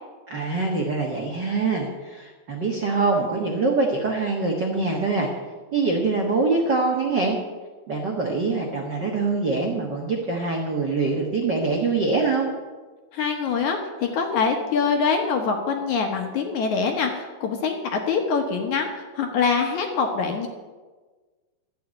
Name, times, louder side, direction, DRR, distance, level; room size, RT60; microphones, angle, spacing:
voice 1, 0.3-5.3 5.7-7.4 7.9-12.5, right 3 dB, 85° right, 0 dB, 0.9 m, -24 dB
voice 2, 13.1-20.5, left 5 dB, 65° left, 3 dB, 2.1 m, -24 dB
13.0 x 7.0 x 8.8 m, 1.3 s
omnidirectional pair, 4.4 m